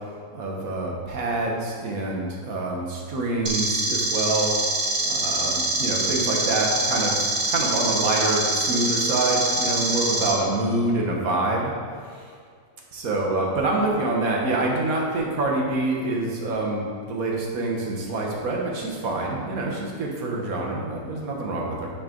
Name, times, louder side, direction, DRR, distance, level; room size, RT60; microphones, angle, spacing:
voice 1, 0.3-4.5 5.0-7.2 7.5-11.7 12.1-12.3 12.9-21.9, right 2 dB, 75° right, -2 dB, 1.5 m, -26 dB
sound 1, 3.5-10.3, right 2 dB, 40° right, 0.9 m, -25 dB
8.8 x 4.0 x 3.7 m, 2.1 s
omnidirectional pair, 1.5 m